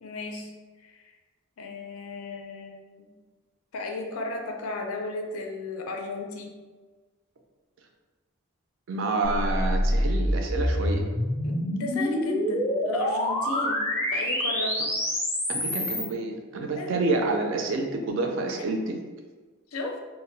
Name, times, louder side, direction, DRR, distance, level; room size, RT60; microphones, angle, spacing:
voice 1, 0.0-0.5 0.8-1.1 1.6-3.2 3.7-6.6 11.4-14.8 16.6-17.0 18.6-18.7 19.7-20.0, left 2 dB, 85° left, 3 dB, 0.4 m, -35 dB
voice 2, 8.9-11.0 15.5-19.0, right 3 dB, 60° right, 3 dB, 0.4 m, -28 dB
sound 1, 9.2-16.1, equal, 15° left, 0.4 m, -26 dB
2.1 x 2.0 x 3.8 m, 1.3 s
head